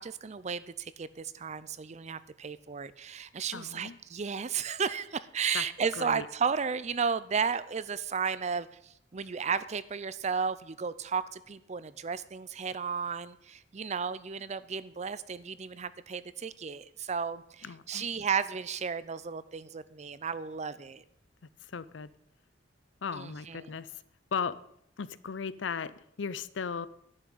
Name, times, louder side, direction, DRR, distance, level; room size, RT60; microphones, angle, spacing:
voice 1, 0.0-21.0 23.1-23.7, right 6 dB, 40° right, 16 dB, 0.5 m, -34 dB
voice 2, 3.5-4.0 5.5-5.6 6.0-6.3 17.6-18.1 21.7-22.1 23.0-23.9 24.3-24.6 25.0-26.9, left 6 dB, 90° left, 17 dB, 0.6 m, -36 dB
11.0 x 6.1 x 8.3 m, 0.73 s
head